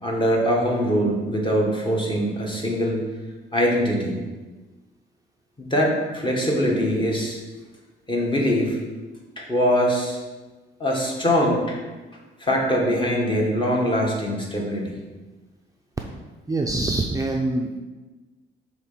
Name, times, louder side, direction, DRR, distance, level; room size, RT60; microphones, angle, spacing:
voice 1, 0.0-3.0 3.5-4.2 5.6-7.4 8.1-8.8 9.4-10.2 10.8-11.8 12.4-15.0, equal, 25° left, -2 dB, 1.6 m, -22 dB
voice 2, 16.5-17.8, right 2 dB, 15° right, 1 dB, 0.5 m, -24 dB
6.1 x 3.2 x 5.7 m, 1.2 s
cardioid pair, 90°, 20 cm